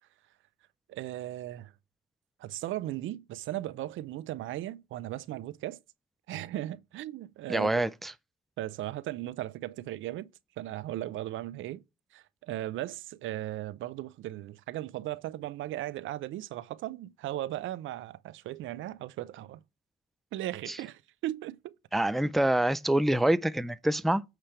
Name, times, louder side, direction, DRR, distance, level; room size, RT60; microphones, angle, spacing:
voice 1, 0.9-1.7 2.4-5.8 6.3-7.9 8.6-10.3 10.6-11.8 12.1-19.6 20.3-21.8, right 14 dB, 80° right, 0.5 m, -37 dB
voice 2, 7.5-8.1 20.7-20.8 21.9-24.2, right 1 dB, ahead, 0.3 m, -26 dB
8.9 x 3.3 x 5.7 m
cardioid pair, 90°, 20 cm